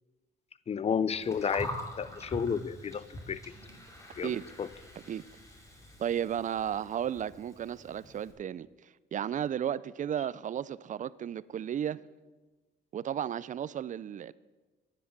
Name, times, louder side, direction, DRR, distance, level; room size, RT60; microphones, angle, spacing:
voice 1, 0.7-1.7 2.0-3.4 4.2-4.3 4.6-4.7, left 7 dB, 30° left, 0.4 m, -31 dB
Gurgling, 1.1-8.3, equal, 15° left, 2.4 m, -44 dB
voice 2, 6.0-12.0 12.9-14.3, right 9 dB, 40° right, 0.4 m, -34 dB
10.0 x 8.7 x 6.0 m
cardioid pair, 90°, 20 cm